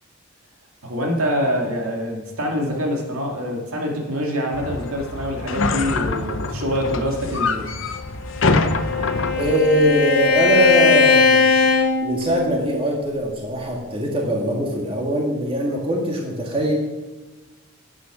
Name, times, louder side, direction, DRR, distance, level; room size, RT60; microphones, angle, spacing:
voice 1, 0.8-7.7, equal, 80° right, 0 dB, 2.3 m, -25 dB
sound 1, 4.5-9.6, left 3 dB, 60° left, 0.7 m, -24 dB
Bowed string instrument, 8.3-12.8, left 5 dB, 85° left, 1.8 m, -19 dB
voice 2, 9.3-11.5 12.0-16.7, equal, 25° right, -1 dB, 1.9 m, -21 dB
10.0 x 8.0 x 6.2 m, 1.2 s
head